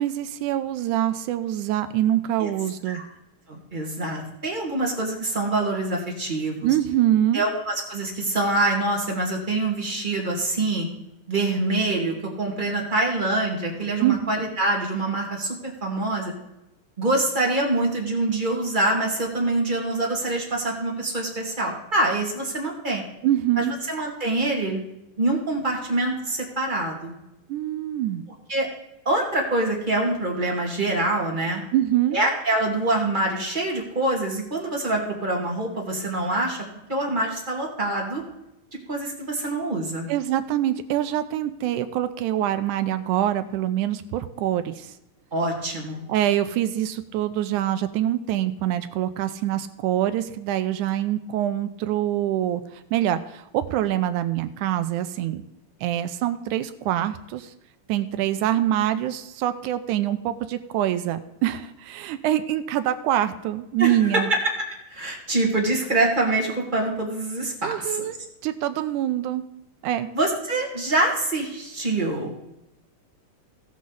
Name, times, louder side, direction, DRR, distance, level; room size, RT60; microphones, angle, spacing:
voice 1, 0.0-3.0 6.6-7.4 14.0-14.3 23.2-23.7 27.5-28.2 31.7-32.2 40.1-44.9 46.1-55.4 55.8-57.5 57.9-64.3 67.6-68.2 68.4-69.4 69.8-70.1, right 12 dB, 80° right, 10 dB, 1.8 m, -25 dB
voice 2, 3.5-6.7 7.3-10.9 11.3-16.3 17.0-23.0 23.6-24.9 25.2-27.1 28.5-28.7 29.0-31.6 32.1-36.6 36.9-38.2 38.9-40.1 45.3-46.0 63.8-63.9 64.9-68.1 70.1-72.4, right 2 dB, 20° right, -1 dB, 1.3 m, -25 dB
17.5 x 6.3 x 3.9 m, 0.89 s
omnidirectional pair, 4.0 m